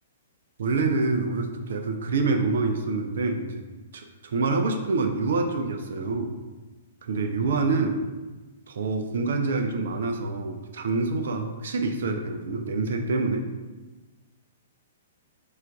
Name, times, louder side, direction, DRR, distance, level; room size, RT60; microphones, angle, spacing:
voice 1, 0.6-3.6 3.9-6.3 7.0-8.0 8.7-13.4, right 3 dB, 55° right, 4 dB, 0.4 m, -26 dB
4.4 x 2.5 x 4.5 m, 1.2 s
figure-of-eight pair, 110°, 0 cm